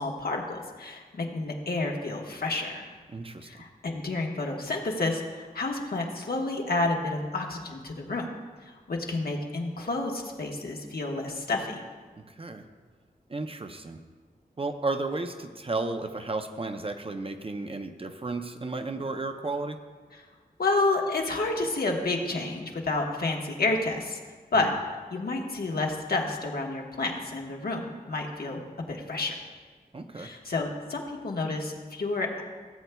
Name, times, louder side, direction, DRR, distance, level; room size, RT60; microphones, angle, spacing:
voice 1, 0.0-2.9 3.4-8.3 8.6-11.8 20.1-20.2 20.6-24.2 24.5-24.7 25.1-28.6 28.9-29.4 30.2-32.4, left 2 dB, 70° left, 0 dB, 1.3 m, -30 dB
voice 2, 3.1-3.5 12.3-12.6 13.3-14.0 14.6-19.8 24.5-24.8 29.9-30.3, right 3 dB, 35° right, 6 dB, 0.6 m, -33 dB
17.5 x 7.9 x 2.3 m, 1.5 s
wide cardioid pair, 105°, 16 cm